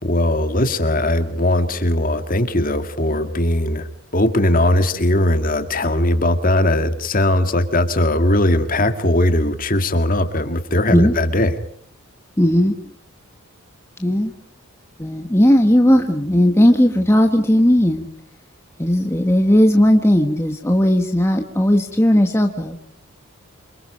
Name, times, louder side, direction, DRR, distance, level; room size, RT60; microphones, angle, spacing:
voice 1, 0.0-11.6, left 1 dB, 40° left, 8 dB, 2.1 m, -19 dB
voice 2, 12.4-12.7 14.0-14.3 15.0-18.1 18.8-22.9, equal, 10° left, 4 dB, 1.3 m, -16 dB
27.5 x 24.5 x 5.2 m, 0.62 s
head